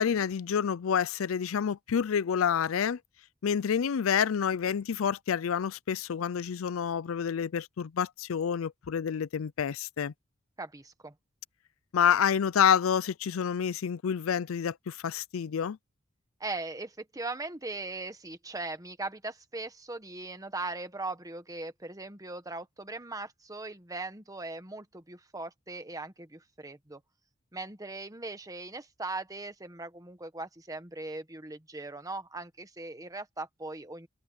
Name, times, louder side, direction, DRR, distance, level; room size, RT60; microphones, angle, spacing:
voice 1, 0.0-3.0 3.4-10.1 11.9-15.8, left 7 dB, 90° left, 0.4 m, -28 dB
voice 2, 10.6-11.1 16.4-27.0 27.5-34.1, right 2 dB, 15° right, 1.4 m, -39 dB
head